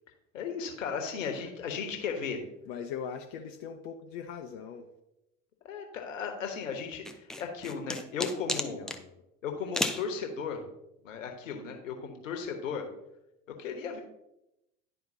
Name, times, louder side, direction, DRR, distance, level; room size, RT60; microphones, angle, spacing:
voice 1, 0.3-2.4 5.6-8.8 9.4-10.6 11.0-12.8 13.6-14.0, left 6 dB, 75° left, 4 dB, 1.2 m, -35 dB
voice 2, 2.7-4.9 8.7-9.1, left 7 dB, 55° left, 4 dB, 0.7 m, -40 dB
sound 1, 7.1-9.0 9.7-10.1, left 1 dB, ahead, 0.4 m, -32 dB
11.0 x 4.3 x 2.7 m, 0.88 s
figure-of-eight pair, 70°, 39 cm